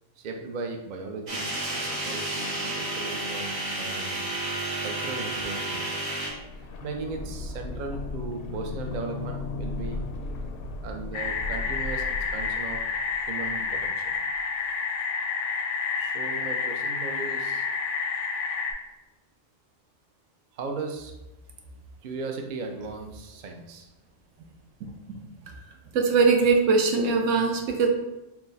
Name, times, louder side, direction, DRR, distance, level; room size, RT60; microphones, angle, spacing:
voice 1, 0.2-4.3 4.8-5.9 6.8-10.1 10.8-12.8 13.3-14.1 15.9-17.7 20.5-21.1 22.0-23.9, right 3 dB, 55° right, 3 dB, 0.5 m, -37 dB
sound 1, 1.3-6.3, right 2 dB, 30° right, 0.9 m, -31 dB
sound 2, 6.3-14.1 14.3-14.4, left 3 dB, 60° left, 0.6 m, -36 dB
sound 3, 11.1-18.7, left 5 dB, 80° left, 0.9 m, -29 dB
voice 2, 25.9-27.9, right 4 dB, 80° right, 3 dB, 1.0 m, -21 dB
4.5 x 2.1 x 3.9 m, 1.0 s
omnidirectional pair, 1.3 m